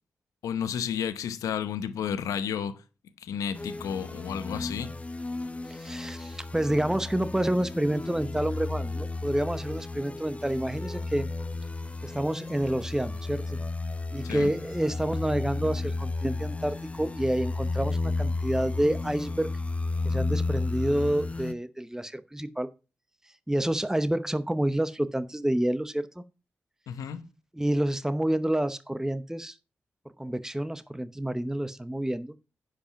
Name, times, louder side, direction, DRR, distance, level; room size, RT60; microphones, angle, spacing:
voice 1, 0.4-2.7 3.2-4.9 14.2-14.5 26.9-27.2, left 8 dB, 90° left, 0.9 m, -32 dB
sound 1, 3.5-21.5, left 3 dB, 25° left, 0.7 m, -33 dB
voice 2, 5.7-11.3 12.0-13.6 14.1-19.5 20.0-22.7 23.5-26.2 27.5-29.6 30.2-32.3, right 1 dB, 10° right, 0.9 m, -28 dB
10.0 x 5.1 x 5.9 m
supercardioid pair, 40°, 6 cm